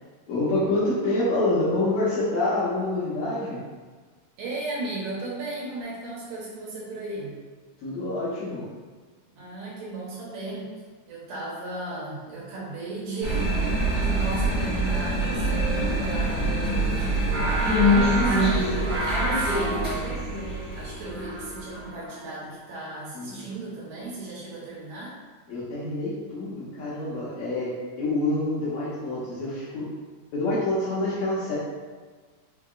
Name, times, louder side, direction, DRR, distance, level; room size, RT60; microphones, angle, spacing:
voice 1, 0.3-3.6 7.8-8.7 23.1-23.5 25.5-29.9 30.3-31.6, left 2 dB, 85° left, -10 dB, 1.6 m, -27 dB
voice 2, 4.4-7.4 9.3-10.7 11.1-25.2, right 2 dB, 75° right, -6 dB, 2.5 m, -36 dB
sound 1, 13.2-21.8, right 1 dB, 55° right, 1.1 m, -25 dB
Singing, 17.3-22.6, right 1 dB, 90° right, 1.2 m, -31 dB
5.4 x 2.8 x 2.3 m, 1.4 s
omnidirectional pair, 4.2 m